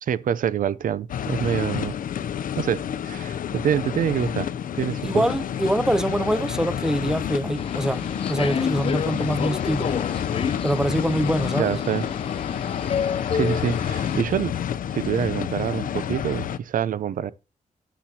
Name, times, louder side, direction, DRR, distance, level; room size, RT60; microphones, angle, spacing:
voice 1, 0.0-1.9 2.6-5.2 11.6-12.1 13.3-14.6 14.9-17.3, right 8 dB, 75° right, 0.7 m, -26 dB
sound 1, 1.1-16.6, left 9 dB, 80° left, 0.6 m, -29 dB
voice 2, 5.0-10.0 10.6-11.7, right 1 dB, 5° right, 0.6 m, -24 dB
Subway metro underground, 7.6-14.2, left 7 dB, 40° left, 0.4 m, -30 dB
10.5 x 10.0 x 2.9 m
cardioid pair, 105°, 14 cm